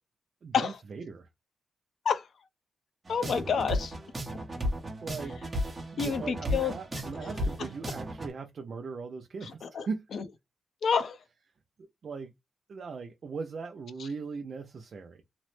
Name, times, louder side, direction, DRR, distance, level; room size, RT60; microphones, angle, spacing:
voice 1, 0.4-1.3 5.0-5.4 5.9-10.0 12.0-12.3 12.7-15.2, right 5 dB, 50° right, 0.4 m, -39 dB
voice 2, 3.1-3.9 6.0-6.7 7.1-7.4 9.4-9.9 10.1-10.2 10.8-11.2, left 6 dB, 65° left, 0.5 m, -29 dB
sound 1, 3.1-8.3, equal, 25° right, 0.8 m, -34 dB
2.9 x 2.0 x 3.1 m
wide cardioid pair, 165°, 0 cm